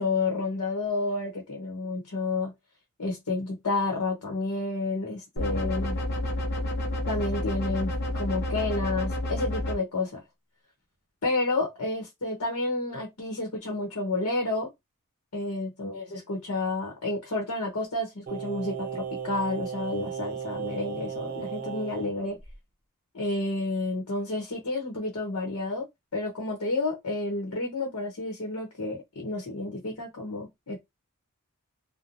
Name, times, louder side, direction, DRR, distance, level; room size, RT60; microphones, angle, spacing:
voice 1, 0.0-2.5 3.0-6.0 7.1-10.2 11.2-14.7 15.3-22.4 23.1-25.9 26.1-30.8, left 2 dB, 75° left, 0.9 m, -30 dB
sound 1, 5.4-9.7, left 1 dB, 50° left, 0.7 m, -30 dB
Singing, 18.3-22.1 22.4-22.5, right 7 dB, 45° right, 0.8 m, -35 dB
3.0 x 2.1 x 2.5 m
head